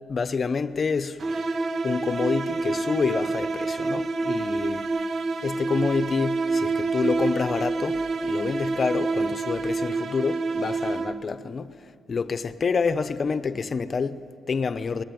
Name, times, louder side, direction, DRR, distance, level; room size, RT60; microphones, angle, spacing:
voice 1, 0.1-1.2 1.8-4.8 5.4-11.8 12.1-15.0, left 5 dB, 35° left, 1.0 m, -27 dB
sound 1, 1.2-11.4, right 3 dB, 45° right, 1.0 m, -27 dB
27.0 x 21.0 x 9.4 m
cardioid pair, 130°, 0 cm